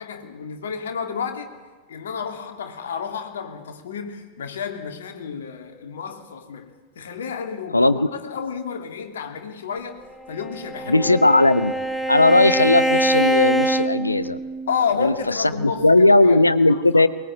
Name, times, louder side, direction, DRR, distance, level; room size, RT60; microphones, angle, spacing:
voice 1, 0.0-1.5 1.9-6.7 6.9-9.9 10.3-11.4 14.7-17.0, left 6 dB, 65° left, 3.0 m, -31 dB
voice 2, 7.7-8.1 10.9-11.7 12.1-14.4 15.0-15.1 15.4-17.1, left 2 dB, 85° left, 1.0 m, -17 dB
Bowed string instrument, 10.3-14.8, right 1 dB, 5° left, 1.8 m, -24 dB
23.0 x 20.5 x 9.0 m
figure-of-eight pair, 90°, 0 cm